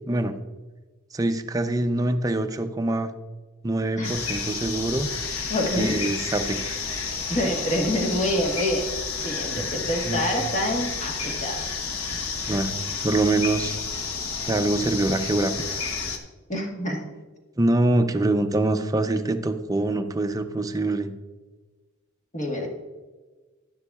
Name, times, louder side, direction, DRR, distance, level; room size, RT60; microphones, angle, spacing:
voice 1, 1.1-3.1 3.6-5.1 5.8-6.8 9.5-9.7 10.0-10.2 12.5-13.8 14.5-15.9 17.6-21.1, right 2 dB, 15° right, 7 dB, 0.5 m, -24 dB
sound 1, 4.0-16.2, left 5 dB, 75° left, 1.0 m, -31 dB
voice 2, 5.5-6.0 7.3-8.8 9.2-11.7 16.5-17.0 22.3-22.7, left 1 dB, 35° left, 1 dB, 1.4 m, -26 dB
10.5 x 9.7 x 2.4 m, 1.3 s
head